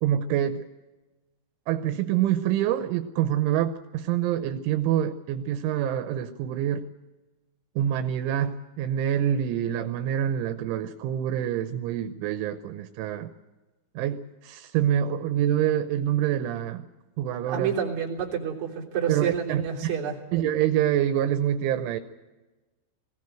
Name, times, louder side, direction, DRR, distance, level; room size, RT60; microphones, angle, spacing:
voice 1, 0.0-0.7 1.7-6.9 7.8-13.3 14.0-16.9 17.2-17.8 19.1-19.6 20.3-22.0, right 10 dB, 85° right, 9 dB, 3.2 m, -26 dB
voice 2, 17.4-20.2, right 8 dB, 40° right, -1 dB, 4.2 m, -29 dB
21.0 x 16.5 x 9.1 m, 1.2 s
omnidirectional pair, 5.5 m